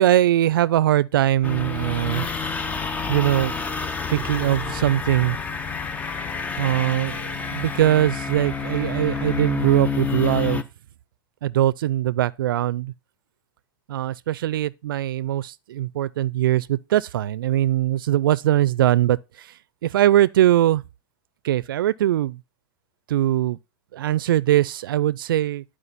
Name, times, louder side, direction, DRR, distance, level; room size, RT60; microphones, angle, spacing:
voice 1, 0.0-2.3 3.1-3.5 4.1-5.4 6.6-10.7 11.4-12.9 13.9-19.2 19.8-20.8 21.4-22.4 23.1-23.6 23.9-25.6, right 13 dB, 80° right, 0.5 m, -21 dB
sound 1, 1.4-10.6, left 5 dB, 15° left, 0.6 m, -29 dB
Wind instrument woodwind instrument, 6.7-10.6, right 2 dB, 5° right, 1.7 m, -46 dB
11.5 x 4.9 x 4.1 m
supercardioid pair, 145°, 11 cm